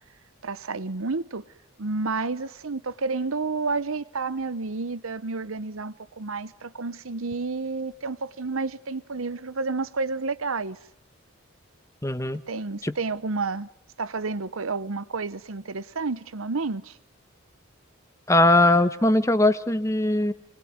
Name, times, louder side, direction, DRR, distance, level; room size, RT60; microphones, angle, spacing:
voice 1, 0.4-1.4 1.8-10.8 12.5-13.7 14.0-17.0, right 3 dB, 75° right, 0.9 m, -30 dB
voice 2, 12.0-12.4 12.8-12.9 18.3-20.3, left 2 dB, 15° left, 1.1 m, -20 dB
25.5 x 22.0 x 9.5 m
head